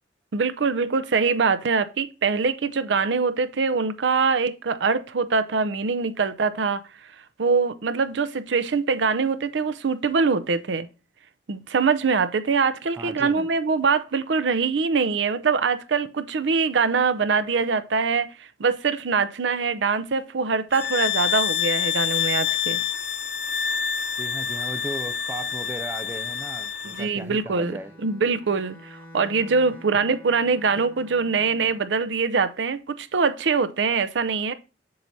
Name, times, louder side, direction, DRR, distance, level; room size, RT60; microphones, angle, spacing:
voice 1, 0.3-6.8 7.4-10.9 11.5-22.8 26.8-27.7 28.0-34.5, right 5 dB, 85° right, 0.6 m, -23 dB
voice 2, 12.9-13.5 24.2-28.0, right 2 dB, 15° right, 0.3 m, -36 dB
sound 1, 20.7-27.1, left 9 dB, 65° left, 0.7 m, -27 dB
Bowed string instrument, 27.4-31.9, equal, 15° left, 3.1 m, -47 dB
7.7 x 5.7 x 2.6 m
head